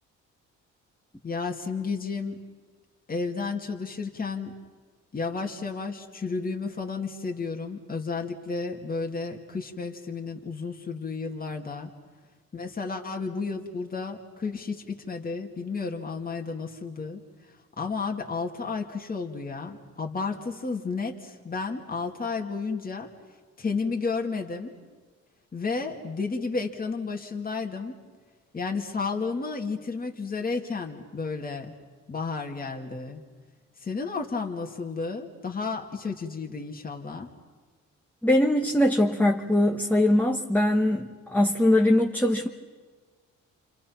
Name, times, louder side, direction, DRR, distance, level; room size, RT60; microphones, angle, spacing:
voice 1, 1.2-2.4 3.1-4.5 5.1-11.9 12.5-17.2 17.8-23.1 23.6-24.7 25.5-28.0 28.5-31.7 32.1-33.2 33.8-37.3, left 4 dB, 30° left, 2 dB, 2.4 m, -32 dB
voice 2, 38.2-42.5, left 1 dB, 5° left, 1 dB, 1.5 m, -22 dB
30.0 x 26.0 x 5.9 m, 1.5 s
cardioid pair, 90°, 30 cm